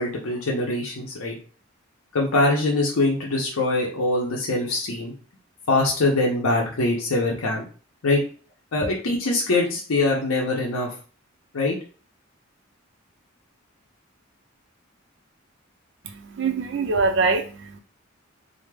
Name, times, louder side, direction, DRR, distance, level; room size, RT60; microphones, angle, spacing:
voice 1, 0.0-1.3 2.1-5.1 5.7-7.6 8.0-8.2 8.7-10.9 11.5-11.8, left 2 dB, 80° left, -2 dB, 0.6 m, -23 dB
voice 2, 16.0-17.8, right 4 dB, 55° right, 6 dB, 0.4 m, -24 dB
2.2 x 2.0 x 3.2 m, 0.39 s
head